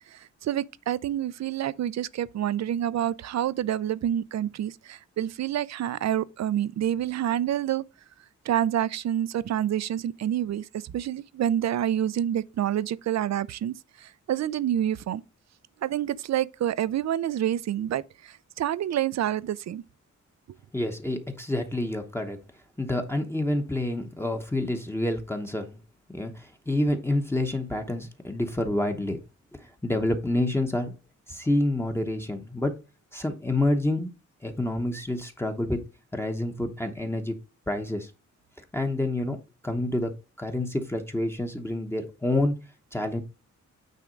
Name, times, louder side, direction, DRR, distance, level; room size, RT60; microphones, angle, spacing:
voice 1, 0.4-7.8 8.5-13.7 14.0-15.2 15.8-19.8, right 11 dB, 60° right, 0.5 m, -28 dB
voice 2, 20.7-22.4 22.8-25.8 26.1-29.2 29.8-30.9 31.3-32.7 33.1-34.1 34.4-35.8 36.1-37.3 37.7-38.1 38.7-39.4 39.6-40.1 40.4-42.5 42.9-43.2, left 1 dB, 10° left, 0.9 m, -28 dB
9.2 x 3.6 x 5.1 m
wide cardioid pair, 140°, 30 cm